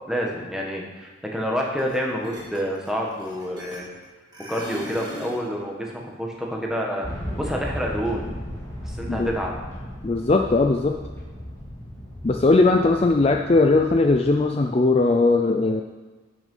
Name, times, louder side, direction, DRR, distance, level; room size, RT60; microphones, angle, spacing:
voice 1, 0.1-3.9 4.4-7.1 7.3-8.3 9.0-9.5, equal, 5° right, -1 dB, 1.3 m, -28 dB
sound 1, 1.8-2.0 2.2-4.0 4.3-5.4, equal, 20° right, 2.2 m, -38 dB
sound 2, 7.0-14.4, equal, 15° left, 2.5 m, -36 dB
voice 2, 10.0-11.0 12.2-15.8, left 3 dB, 30° left, 4 dB, 0.4 m, -19 dB
10.0 x 6.4 x 5.5 m, 1.3 s
head